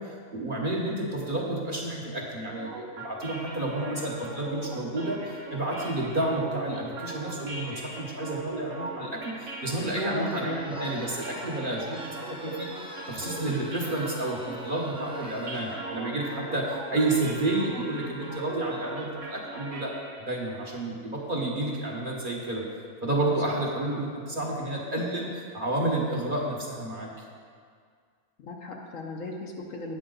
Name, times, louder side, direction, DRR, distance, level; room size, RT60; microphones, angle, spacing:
voice 1, 0.0-19.9 20.2-22.6 23.0-27.1, right 2 dB, 40° right, -2 dB, 1.2 m, -30 dB
sound 1, 2.5-20.3, right 2 dB, 65° right, 1.3 m, -40 dB
sound 2, 6.0-20.0 21.2-21.3, equal, 5° right, 0.5 m, -46 dB
voice 2, 9.9-10.6 15.7-15.9 16.9-17.2 23.5-23.6 28.4-30.0, left 2 dB, 70° left, 1 dB, 1.3 m, -38 dB
8.8 x 8.6 x 3.9 m, 2.1 s
omnidirectional pair, 1.5 m